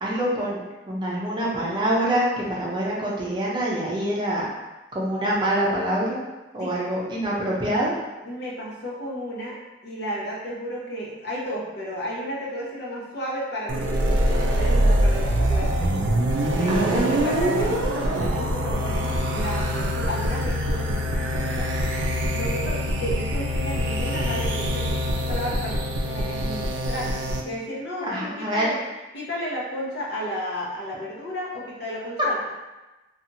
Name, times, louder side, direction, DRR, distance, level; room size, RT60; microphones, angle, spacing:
voice 1, 0.0-4.4 4.9-6.2 6.5-7.9 16.7-17.1 28.0-28.7, right 1 dB, 25° right, -5 dB, 0.5 m, -25 dB
voice 2, 7.3-7.9 8.2-9.6 9.8-15.9 16.6-21.7 22.3-27.1 27.4-28.8 29.1-32.5, equal, 65° left, -4 dB, 0.7 m, -33 dB
sound 1, 13.7-27.4, equal, 80° right, 0.4 m, -24 dB
2.8 x 2.4 x 2.6 m, 1.1 s
head